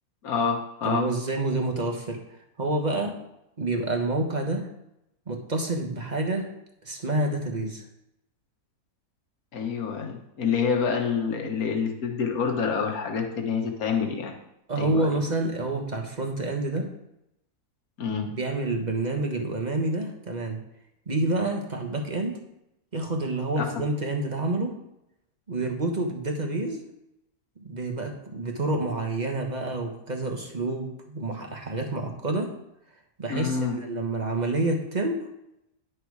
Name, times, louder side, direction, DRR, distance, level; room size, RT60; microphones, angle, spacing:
voice 1, 0.2-1.1 9.5-14.3 14.8-15.2 18.0-18.3 23.6-23.7 33.3-33.8, left 6 dB, 70° left, 3 dB, 1.7 m, -27 dB
voice 2, 0.8-2.2 2.6-3.2 3.6-4.7 5.3-6.5 6.8-7.8 14.7-16.9 18.2-20.6 21.1-22.4 22.9-24.8 25.5-26.8 27.6-32.5 33.2-35.2, right 2 dB, 30° right, 2 dB, 1.4 m, -28 dB
10.5 x 6.4 x 4.8 m, 0.83 s
omnidirectional pair, 1.6 m